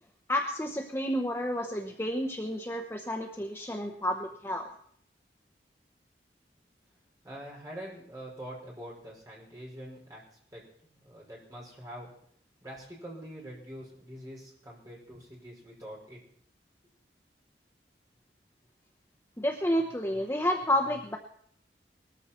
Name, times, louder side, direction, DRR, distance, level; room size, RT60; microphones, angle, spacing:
voice 1, 0.3-4.7 19.4-21.2, equal, 15° left, 2 dB, 0.8 m, -30 dB
voice 2, 7.2-10.2 10.5-12.1 12.6-16.2, equal, 20° right, -3 dB, 5.3 m, -45 dB
19.5 x 13.5 x 4.4 m, 0.66 s
head